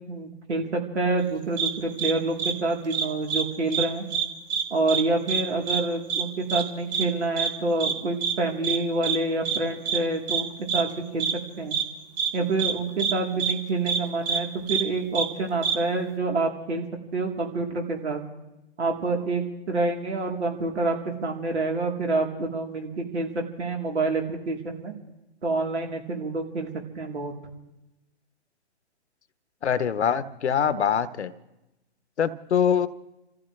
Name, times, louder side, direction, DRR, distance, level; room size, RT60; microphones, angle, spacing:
voice 1, 0.1-4.1 4.7-11.3 11.6-11.8 12.3-16.9 17.1-18.2 18.8-24.9 25.4-26.7 27.0-27.3, right 2 dB, 80° right, 1 dB, 3.5 m, -27 dB
sound 1, 1.6-1.7 2.0-2.1 2.4-2.5 2.9-3.4 3.7-3.8 4.1-4.6 4.9-5.0 5.3-5.4 5.7-5.8 6.1-6.2 6.5-6.6 6.9-7.0 7.4-7.5 7.8-7.9 8.2-8.3 8.6-8.8 9.0-9.2 9.4-9.6 9.8-10.0 10.3-10.4 10.7-10.8 11.2-11.3 11.7-11.8 12.2-12.3 12.6-12.7 13.0-13.1 13.4-13.5 13.9-14.0 14.3-14.4 14.7-14.8 15.1-15.3 15.6-15.7, right 6 dB, 40° right, 2.0 m, -25 dB
voice 2, 29.6-31.3 32.2-32.9, left 8 dB, 80° left, 13 dB, 1.1 m, -23 dB
29.5 x 14.5 x 3.3 m, 0.95 s
hypercardioid pair, 130°, 34 cm